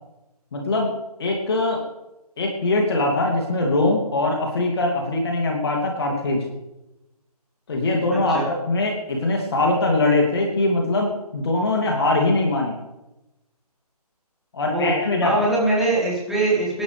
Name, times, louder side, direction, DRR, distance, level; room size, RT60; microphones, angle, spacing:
voice 1, 0.5-0.9 1.2-1.8 2.4-6.5 7.7-8.4 8.7-12.8 14.5-15.3, left 2 dB, 40° left, 0 dB, 2.7 m, -22 dB
voice 2, 15.2-16.8, right 2 dB, ahead, -8 dB, 4.0 m, -22 dB
25.0 x 12.0 x 3.5 m, 0.96 s
figure-of-eight pair, 150°, 20 cm